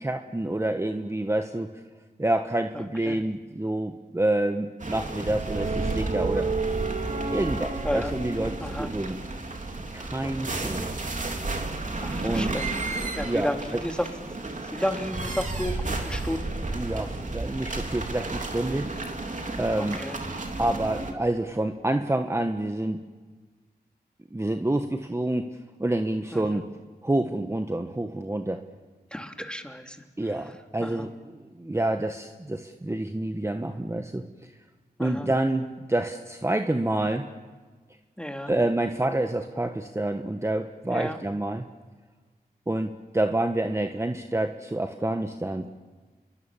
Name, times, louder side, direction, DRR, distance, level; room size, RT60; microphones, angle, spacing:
voice 1, 0.0-1.8 2.2-6.5 7.3-9.2 9.9-10.9 12.2-12.5 13.2-13.8 16.7-18.9 19.6-20.0 20.6-23.0 24.3-25.5 25.8-26.7 27.0-28.6 30.2-34.2 35.0-37.3 38.5-41.6 42.7-45.7, right 1 dB, 15° right, 6 dB, 1.4 m, -28 dB
sound 1, 4.8-21.1, right 3 dB, 50° right, 3.4 m, -31 dB
voice 2, 12.0-12.7 13.0-16.5 19.8-20.2 26.3-26.6 29.1-30.0 30.8-31.1 35.0-35.3 38.2-38.5 40.9-41.2, equal, 5° left, 5 dB, 2.9 m, -32 dB
29.0 x 22.5 x 7.4 m, 1.4 s
cardioid pair, 55°, 17 cm